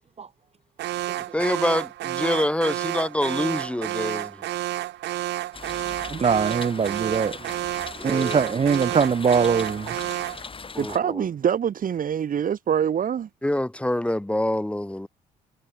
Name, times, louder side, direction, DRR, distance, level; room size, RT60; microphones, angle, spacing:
Alarm, 0.8-10.5, right 14 dB, 75° right, 2.8 m, -30 dB
voice 1, 1.3-4.4 8.0-8.5 10.7-11.2 13.4-15.1, left 1 dB, 5° left, 1.3 m, -26 dB
sound 1, 5.5-11.0, left 4 dB, 30° left, 2.3 m, -40 dB
voice 2, 6.1-7.5 8.0-10.0, right 6 dB, 35° right, 1.0 m, -22 dB
voice 3, 10.8-13.3, right 8 dB, 50° right, 1.8 m, -25 dB
supercardioid pair, 70°, 18 cm